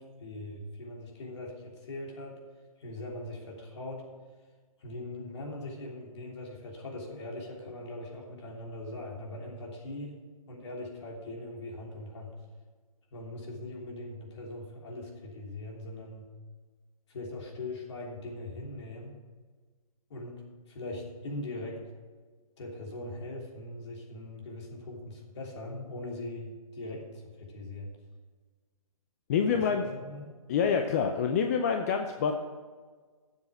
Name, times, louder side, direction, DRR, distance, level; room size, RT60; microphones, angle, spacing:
voice 1, 0.0-2.4 2.8-4.1 4.8-10.2 10.5-12.3 13.1-16.3 17.1-19.1 20.1-20.4 20.7-21.8 22.6-27.9 29.5-30.3, left 1 dB, 50° left, -1 dB, 3.1 m, -41 dB
voice 2, 29.3-29.8 30.5-32.3, left 6 dB, 25° left, 5 dB, 0.6 m, -26 dB
12.0 x 7.3 x 6.4 m, 1.5 s
hypercardioid pair, 155°, 18 cm